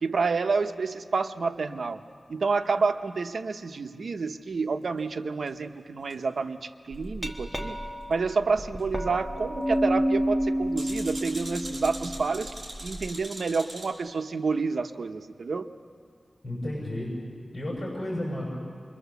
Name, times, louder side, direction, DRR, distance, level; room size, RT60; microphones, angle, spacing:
voice 1, 0.0-2.0 2.3-7.8 8.1-12.5 12.8-15.7, right 4 dB, 80° right, 8 dB, 0.8 m, -29 dB
sound 1, 5.5-5.6 6.1-6.2 8.8-8.9 10.8-13.9, right 1 dB, 30° right, 5.1 m, -41 dB
Glass, 6.9-13.1, equal, ahead, 1.6 m, -30 dB
voice 2, 16.4-17.1 17.5-18.4, left 1 dB, 40° left, -4 dB, 6.3 m, -32 dB
27.0 x 22.5 x 7.1 m, 2.1 s
wide cardioid pair, 110°, 0 cm